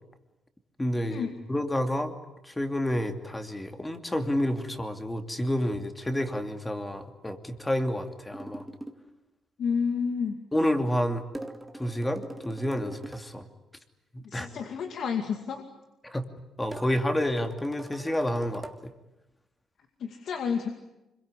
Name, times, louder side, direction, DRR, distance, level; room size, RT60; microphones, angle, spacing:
voice 1, 0.8-2.1 2.4-8.6 10.5-11.2 11.8-13.5 14.1-14.5 16.0-16.3 16.6-18.7, left 1 dB, 15° left, 7 dB, 2.7 m, -29 dB
sound 1, 8.3-9.0 11.3-13.3 16.7-18.8, right 1 dB, 10° right, 2.2 m, -42 dB
voice 2, 9.6-10.4 14.2-15.6 20.0-20.7, left 6 dB, 65° left, 5 dB, 2.3 m, -30 dB
25.5 x 23.0 x 9.9 m, 0.97 s
cardioid pair, 90°, 0 cm